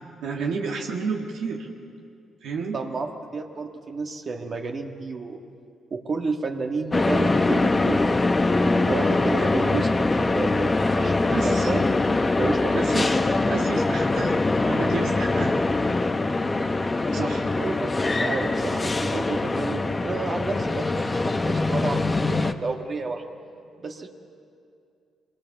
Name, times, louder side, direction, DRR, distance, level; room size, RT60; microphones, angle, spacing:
voice 1, 0.2-1.7 2.4-2.8 11.2-11.7 12.7-13.2 13.4-14.4 14.6-15.5 17.1-17.4, right 5 dB, 80° right, 0 dB, 1.7 m, -31 dB
voice 2, 2.7-5.4 5.9-11.1 11.4-11.9 12.4-13.1 17.0-23.2 23.8-24.1, right 4 dB, 50° right, 2 dB, 1.6 m, -31 dB
sound 1, 6.9-22.5, left 2 dB, 25° left, 1.0 m, -23 dB
24.0 x 18.0 x 7.1 m, 2.4 s
supercardioid pair, 65°, 0 cm